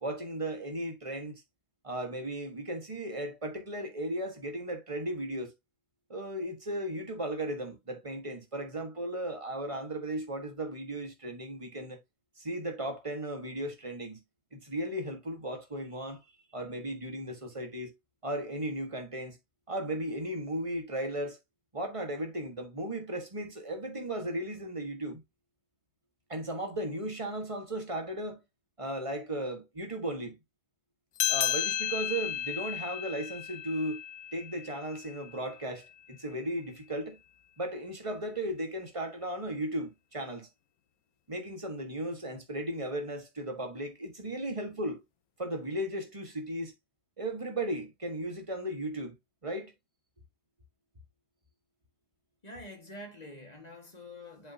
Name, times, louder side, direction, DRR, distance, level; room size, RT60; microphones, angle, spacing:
voice 1, 0.0-1.4 1.8-5.5 6.1-12.0 12.4-14.2 14.5-16.2 16.5-17.9 18.2-19.4 19.7-21.4 21.7-25.2 26.3-28.4 28.8-30.4 31.3-34.0 34.3-37.2 37.6-40.5 41.3-45.0 45.4-46.7 47.2-49.1 49.4-49.7, right 1 dB, 20° right, 1.6 m, -36 dB
sound 1, 31.2-36.1, left 12 dB, 75° left, 1.1 m, -34 dB
voice 2, 52.4-54.5, left 1 dB, 25° left, 1.9 m, -46 dB
8.0 x 4.7 x 2.8 m
omnidirectional pair, 1.6 m